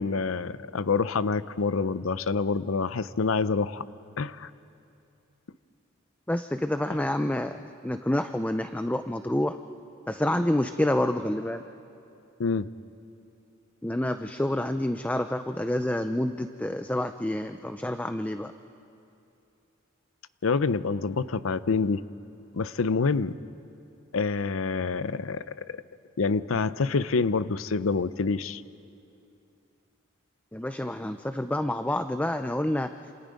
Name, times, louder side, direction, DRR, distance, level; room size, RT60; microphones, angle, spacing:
voice 1, 0.0-3.8 4.2-4.5 6.9-7.0 12.4-12.7 20.4-22.0 22.5-23.3 24.1-25.8 26.2-28.6, left 4 dB, 90° left, 15 dB, 0.6 m, -27 dB
voice 2, 6.3-7.6 7.8-9.5 10.1-11.6 13.8-18.5 30.5-32.9, left 1 dB, 5° left, 9 dB, 0.5 m, -28 dB
28.0 x 27.5 x 5.3 m, 2.7 s
head